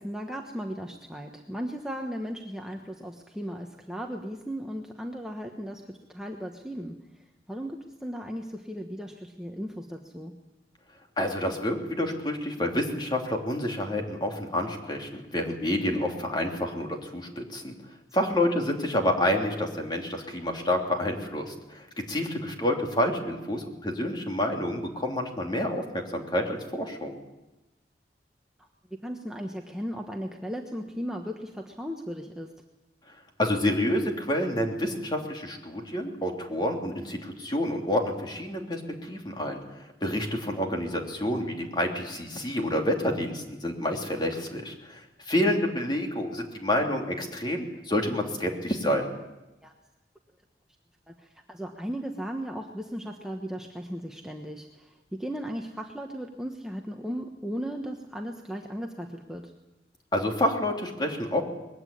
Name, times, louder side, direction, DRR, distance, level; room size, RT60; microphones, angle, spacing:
voice 1, 0.0-7.0 7.5-10.4 18.2-18.4 28.9-32.5 49.6-49.7 51.1-59.5, equal, 5° right, 1 dB, 1.2 m, -36 dB
voice 2, 11.2-17.7 18.1-27.2 33.4-49.1 60.1-61.4, left 1 dB, 25° left, 2 dB, 3.0 m, -28 dB
21.0 x 16.0 x 10.0 m, 1.0 s
head